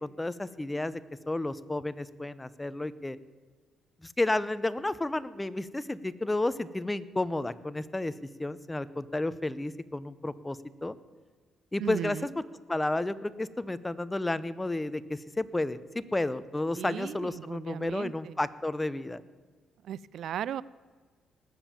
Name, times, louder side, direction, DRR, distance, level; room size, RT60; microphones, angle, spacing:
voice 1, 0.0-1.0 1.3-3.2 4.0-8.1 8.4-11.0 11.7-12.4 12.7-19.2, left 2 dB, 15° left, 15 dB, 0.7 m, -32 dB
voice 2, 11.8-12.3 16.8-18.3 19.8-20.6, right 10 dB, 70° right, 20 dB, 0.3 m, -36 dB
19.5 x 7.3 x 7.3 m, 1.5 s
cardioid pair, 90°, 0 cm